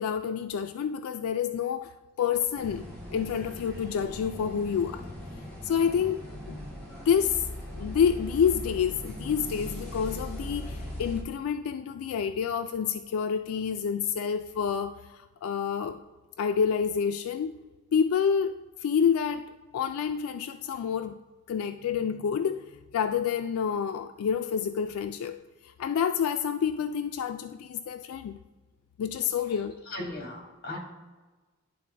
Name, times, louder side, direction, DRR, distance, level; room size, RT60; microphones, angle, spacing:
voice 1, 0.0-1.9 2.2-2.8 3.1-5.1 5.6-6.2 6.5-6.6 7.1-7.5 7.8-16.0 16.4-17.6 17.9-19.4 19.7-21.2 21.5-22.7 22.9-25.4 25.8-28.4 29.0-29.8, left 7 dB, 85° left, 10 dB, 0.3 m, -28 dB
sound 1, 2.5-11.2, left 1 dB, 5° left, 1.9 m, -39 dB
voice 2, 29.9-30.8, left 2 dB, 45° left, 0 dB, 1.8 m, -38 dB
11.0 x 3.8 x 3.3 m, 1.3 s
head